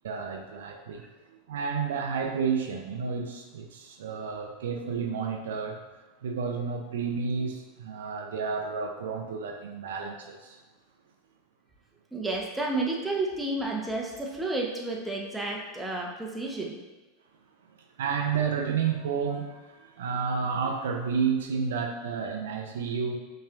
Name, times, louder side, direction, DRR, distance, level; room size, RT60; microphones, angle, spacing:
voice 1, 0.0-1.0 1.5-5.8 6.2-10.6 18.0-23.1, right 6 dB, 80° right, 3 dB, 0.5 m, -31 dB
voice 2, 12.1-16.8, right 2 dB, 10° right, -1 dB, 0.8 m, -31 dB
5.5 x 3.2 x 2.5 m, 1.2 s
hypercardioid pair, 95°, 0 cm